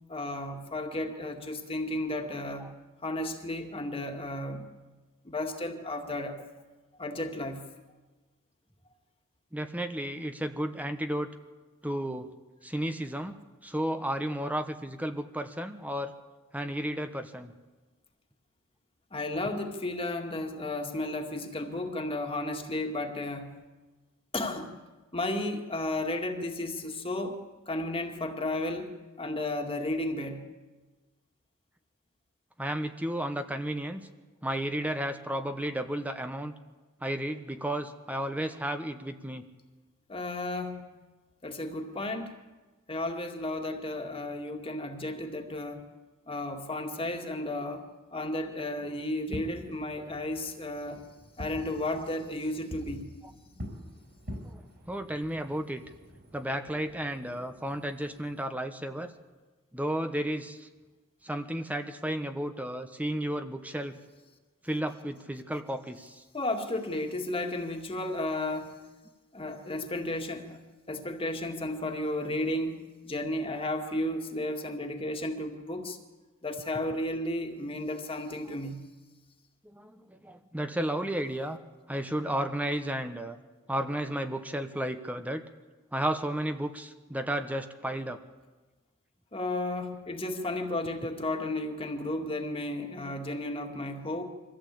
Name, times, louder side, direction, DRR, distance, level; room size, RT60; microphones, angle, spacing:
voice 1, 0.1-2.7 3.0-4.6 5.2-6.4 7.0-7.6 19.1-23.5 24.3-24.7 25.1-30.4 40.1-40.9 41.4-42.4 42.9-45.8 46.3-47.8 48.1-51.0 51.4-53.0 66.3-68.7 69.3-70.6 70.9-72.8 73.0-76.0 76.4-78.8 89.3-94.2, left 1 dB, 25° left, 2.2 m, -33 dB
voice 2, 9.5-11.3 11.8-12.3 12.6-16.1 16.5-17.5 32.6-34.0 34.4-36.5 37.0-39.4 54.4-54.6 54.9-55.8 56.3-59.1 59.7-60.7 61.2-64.0 64.6-66.2 79.6-81.6 81.9-83.4 83.7-85.4 85.9-88.2, right 1 dB, 5° right, 1.0 m, -33 dB
Fireworks, 49.1-58.4, equal, 50° right, 5.8 m, -46 dB
24.0 x 15.5 x 8.5 m
head